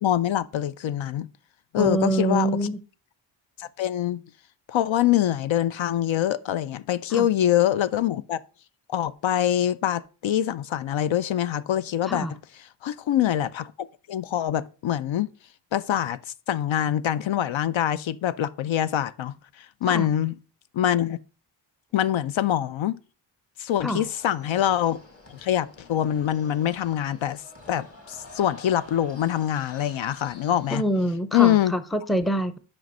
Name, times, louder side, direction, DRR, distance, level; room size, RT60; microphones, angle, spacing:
voice 1, 0.0-1.3 1.7-2.5 3.6-4.2 4.7-8.4 8.9-12.3 12.8-13.7 14.1-15.3 15.7-16.2 16.5-20.3 20.7-21.2 21.9-23.0 23.6-25.0 25.3-27.4 27.7-30.8 31.3-31.7, left 11 dB, 75° left, 0.6 m, -24 dB
voice 2, 1.8-2.8 7.1-7.3 12.1-12.3 19.9-20.1 23.8-24.1 30.7-32.6, right 1 dB, ahead, 0.5 m, -25 dB
sound 1, 24.0-30.8, left 2 dB, 30° left, 2.0 m, -48 dB
7.7 x 5.2 x 5.3 m
wide cardioid pair, 140°, 47 cm